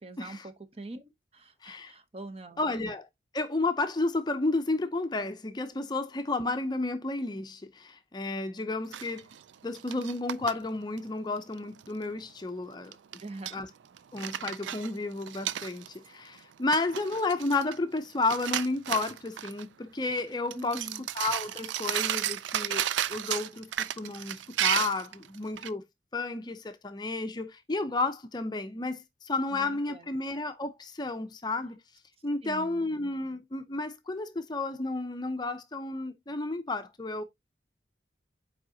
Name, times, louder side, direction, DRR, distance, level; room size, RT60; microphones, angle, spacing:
voice 1, 0.0-2.7 13.2-13.6 20.5-21.1 29.5-30.1 32.4-33.0, right 2 dB, 35° right, 0.8 m, -44 dB
voice 2, 1.6-1.9 2.6-3.1 3.3-9.3 9.6-13.0 13.5-13.7 14.1-20.9 21.1-25.8 26.1-31.8 32.2-37.2, left 3 dB, 25° left, 0.5 m, -32 dB
sound 1, 8.9-10.5 11.0-11.1 11.4-11.9 12.9-13.6 14.0-16.1 16.4-16.5 16.7-18.0 18.2-19.6 20.1-20.2 20.5-25.7, right 11 dB, 85° right, 0.4 m, -33 dB
7.7 x 4.8 x 2.7 m
head